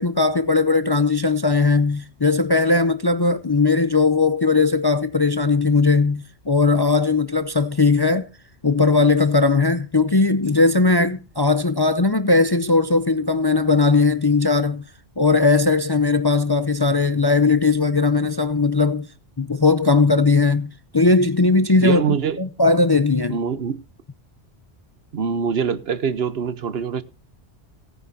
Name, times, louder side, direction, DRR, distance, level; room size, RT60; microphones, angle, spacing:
voice 1, 0.0-8.3 8.6-14.8 15.2-19.1 19.4-22.0 22.4-23.4, left 3 dB, 30° left, 0.5 m, -18 dB
voice 2, 21.8-22.4 23.3-23.8 25.1-27.0, right 6 dB, 65° right, 1.1 m, -24 dB
17.0 x 9.7 x 2.7 m
omnidirectional pair, 1.1 m